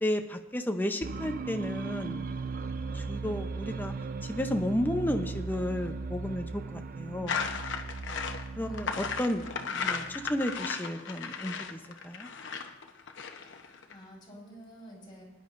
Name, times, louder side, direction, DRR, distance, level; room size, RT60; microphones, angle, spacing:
voice 1, 0.0-2.3 2.9-3.9 4.2-7.4 8.6-12.3, left 1 dB, 10° left, 6 dB, 0.7 m, -33 dB
sound 1, 1.0-10.6, right 4 dB, 45° right, 0.5 m, -38 dB
sound 2, 7.3-13.9, left 6 dB, 65° left, 0.9 m, -35 dB
voice 2, 8.6-10.1 13.9-15.2, right 1 dB, 25° left, -3 dB, 5.0 m, -49 dB
21.0 x 10.5 x 2.6 m, 1.1 s
head